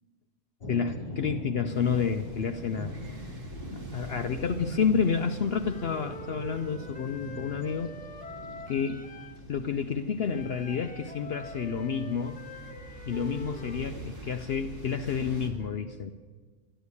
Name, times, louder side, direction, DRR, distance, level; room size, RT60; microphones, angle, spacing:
sound 1, 0.6-10.9, left 1 dB, 40° left, 2.7 m, -43 dB
voice 1, 0.7-2.9 3.7-7.9 8.7-9.1 9.5-12.4 13.1-16.1, left 6 dB, 65° left, 7 dB, 0.6 m, -30 dB
sound 2, 1.7-15.5, right 1 dB, 35° right, 2.2 m, -45 dB
Wind instrument woodwind instrument, 5.6-9.4 10.3-13.9, left 1 dB, 5° left, 0.9 m, -45 dB
12.5 x 11.5 x 8.3 m, 1.4 s
omnidirectional pair, 1.6 m